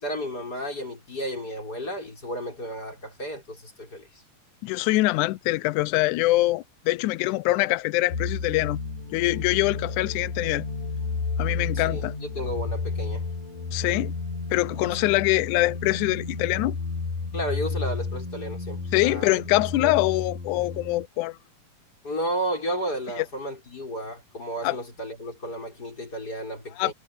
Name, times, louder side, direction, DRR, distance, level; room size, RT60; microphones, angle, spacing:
voice 1, 0.0-4.1 11.7-13.2 17.3-19.4 19.8-19.9 22.0-26.9, equal, 25° left, 6.5 m, -33 dB
voice 2, 4.6-8.8 9.1-10.6 11.4-12.1 13.7-14.1 14.5-16.8 18.9-21.4 23.2-23.3 24.6-24.8 26.8-26.9, left 19 dB, 80° left, 1.9 m, -24 dB
sound 1, 8.1-21.1, left 4 dB, 65° left, 5.6 m, -32 dB
omnidirectional pair, 4.0 m